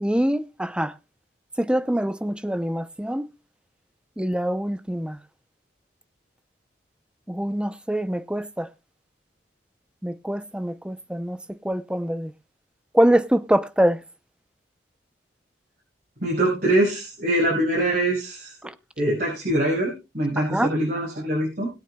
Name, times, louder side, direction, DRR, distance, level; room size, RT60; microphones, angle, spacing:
voice 1, 0.0-0.9 1.6-3.3 4.2-5.2 7.3-8.7 10.0-11.4 11.6-12.3 12.9-14.0 20.4-20.7, right 1 dB, 5° right, 0.6 m, -24 dB
voice 2, 16.2-18.6 19.0-21.7, right 1 dB, 55° right, 5.4 m, -23 dB
21.0 x 8.2 x 2.3 m
head